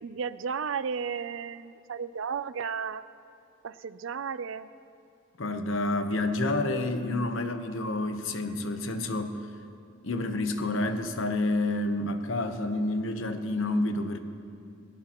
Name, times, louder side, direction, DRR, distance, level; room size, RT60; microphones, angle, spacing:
voice 1, 0.0-3.0 3.6-4.7, right 6 dB, 75° right, 14 dB, 0.5 m, -34 dB
voice 2, 5.4-9.4 10.0-14.2, left 2 dB, 75° left, 7 dB, 1.0 m, -29 dB
21.5 x 18.5 x 3.0 m, 2.5 s
head